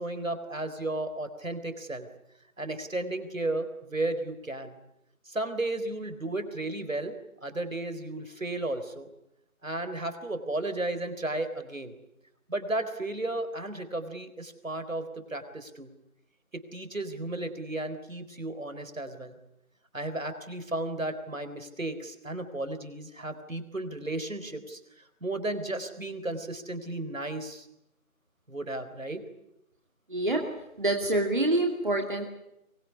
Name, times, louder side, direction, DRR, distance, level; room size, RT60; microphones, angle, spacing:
voice 1, 0.0-2.1 2.6-4.8 5.3-7.2 7.4-9.1 9.6-12.0 12.5-15.9 16.5-19.4 19.9-27.7 28.5-29.2, right 2 dB, 65° right, 9 dB, 4.0 m, -34 dB
voice 2, 30.1-30.5 30.8-32.3, right 2 dB, 35° right, 2 dB, 2.5 m, -26 dB
23.5 x 20.5 x 9.9 m, 0.84 s
figure-of-eight pair, 170°, 43 cm